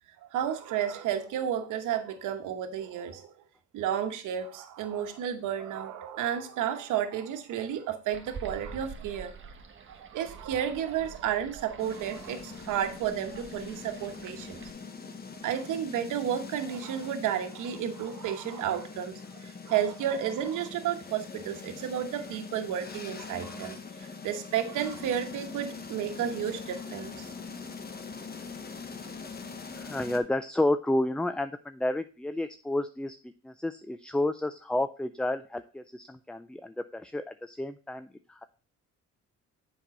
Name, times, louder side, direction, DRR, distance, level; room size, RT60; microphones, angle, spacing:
voice 1, 0.2-3.3 3.7-9.5 9.9-14.6 15.3-27.3, right 9 dB, 85° right, 7 dB, 1.1 m, -32 dB
sound 1, 8.1-14.7, right 5 dB, 40° right, 1.2 m, -47 dB
sound 2, 11.8-30.2, left 5 dB, 30° left, 1.1 m, -43 dB
voice 2, 29.7-33.2 33.4-38.4, left 1 dB, 5° left, 11 dB, 0.3 m, -31 dB
7.3 x 5.3 x 4.2 m, 0.35 s
cardioid pair, 90°, 30 cm